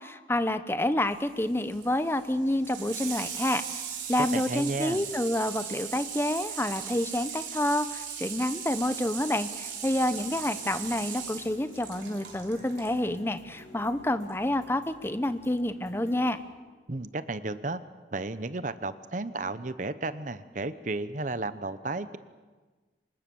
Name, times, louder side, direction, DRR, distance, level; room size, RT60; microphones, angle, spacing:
voice 1, 0.0-3.8 4.1-16.4, left 1 dB, 15° left, 11 dB, 0.9 m, -28 dB
Water tap faucet / Sink (filling or washing), 1.1-12.9 14.2-14.3, right 7 dB, 85° right, 4.2 m, -38 dB
voice 2, 4.3-5.1 16.9-17.8 18.1-22.2, right 2 dB, 45° right, 13 dB, 0.9 m, -33 dB
sound 1, 10.0-16.4, left 1 dB, 90° left, 4.9 m, -52 dB
25.0 x 20.5 x 7.1 m, 1.3 s
head